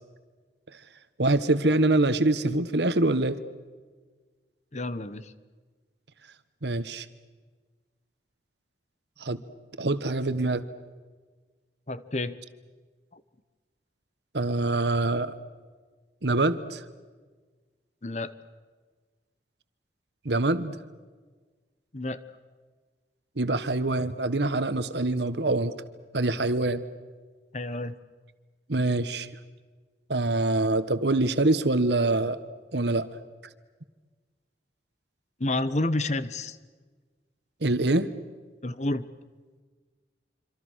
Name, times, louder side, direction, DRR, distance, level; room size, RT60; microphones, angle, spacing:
voice 1, 1.2-3.4 6.6-7.1 9.2-9.4 9.8-10.6 14.3-15.3 16.2-16.8 20.2-20.7 23.4-25.7 26.1-26.8 28.7-29.3 30.1-32.4 32.7-33.1 37.6-38.1, right 2 dB, 75° right, 12 dB, 1.4 m, -25 dB
voice 2, 4.7-5.3 11.9-12.4 13.1-13.2 18.0-18.3 21.9-22.2 27.5-27.9 35.4-36.6 38.6-39.1, left 2 dB, 40° left, 13 dB, 1.1 m, -29 dB
26.5 x 26.0 x 6.4 m, 1.4 s
head